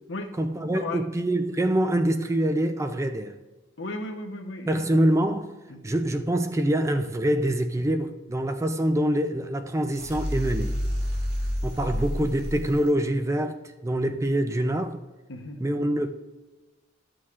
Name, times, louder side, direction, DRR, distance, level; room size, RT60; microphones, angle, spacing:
voice 1, 0.4-3.4 4.7-5.5 5.8-10.8 11.6-15.0 15.6-16.1, right 1 dB, 15° right, 0.4 m, -25 dB
voice 2, 3.8-4.9 5.7-5.8 11.8-11.9 15.3-15.6, left 2 dB, 70° left, 0.9 m, -35 dB
sound 1, 9.9-12.9, equal, 55° right, 1.8 m, -29 dB
12.5 x 6.3 x 2.4 m
head